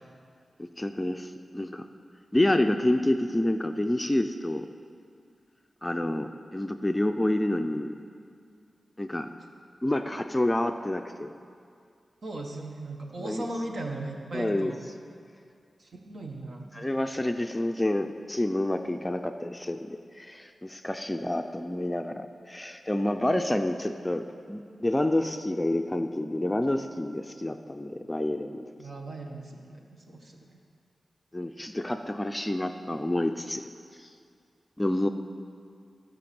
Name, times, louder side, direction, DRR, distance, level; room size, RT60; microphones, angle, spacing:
voice 1, 0.6-1.8 2.3-4.7 5.8-7.9 9.0-9.3 9.8-11.3 13.2-13.7 14.3-14.7 16.7-28.6 31.3-33.6 34.0-34.1 34.8-35.1, left 1 dB, 15° left, 6 dB, 0.5 m, -28 dB
voice 2, 12.2-14.8 15.8-16.7 28.8-29.8 30.1-30.6, right 2 dB, 60° right, 1 dB, 1.4 m, -37 dB
14.5 x 5.9 x 7.0 m, 2.3 s
wide cardioid pair, 85°, 0 cm